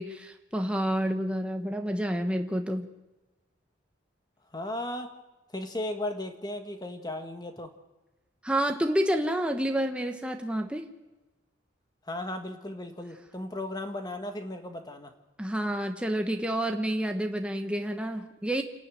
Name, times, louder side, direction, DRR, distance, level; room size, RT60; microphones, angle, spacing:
voice 1, 0.0-2.9 8.4-10.9 15.4-18.6, right 1 dB, 5° right, 4 dB, 1.1 m, -29 dB
voice 2, 4.5-5.1 5.5-7.7 12.1-15.1, left 1 dB, 20° left, 6 dB, 1.6 m, -36 dB
27.0 x 11.5 x 9.2 m, 1.1 s
head